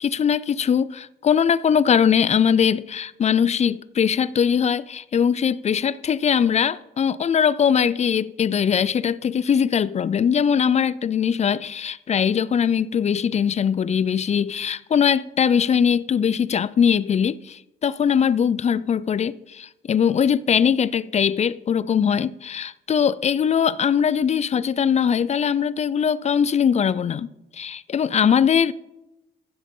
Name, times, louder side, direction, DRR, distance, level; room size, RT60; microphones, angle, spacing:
voice 1, 0.0-27.3 27.5-28.7, left 7 dB, 35° left, 0.4 m, -21 dB
15.0 x 7.6 x 3.7 m
cardioid pair, 90°, 20 cm